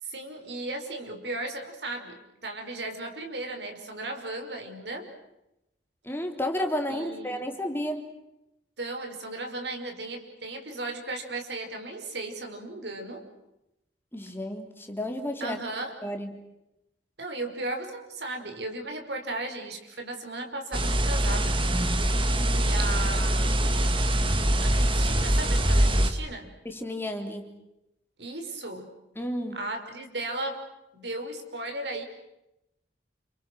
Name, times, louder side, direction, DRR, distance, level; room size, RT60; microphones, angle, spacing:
voice 1, 0.0-5.1 6.9-7.4 8.8-13.3 15.4-15.9 17.2-21.6 22.5-23.9 24.6-26.6 28.2-28.9 29.5-30.6 30.9-32.0, right 2 dB, 70° right, 4 dB, 5.4 m, -36 dB
voice 2, 6.0-8.0 14.1-15.6 16.0-16.3 22.3-22.7 26.7-27.5 29.2-29.6, left 1 dB, 15° left, 4 dB, 3.6 m, -32 dB
sound 1, 20.7-26.1, right 1 dB, 30° right, 2.3 m, -23 dB
30.0 x 30.0 x 6.3 m, 0.89 s
head